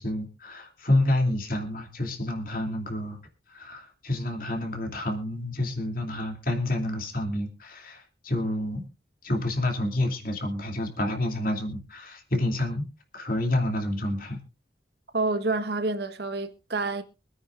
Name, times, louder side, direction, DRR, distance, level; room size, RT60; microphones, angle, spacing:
voice 1, 0.0-3.2 3.5-8.8 9.2-12.9 13.1-14.4, left 1 dB, 50° left, 2.7 m, -28 dB
voice 2, 15.1-17.0, right 3 dB, 60° right, 1.3 m, -28 dB
25.0 x 9.4 x 2.5 m
head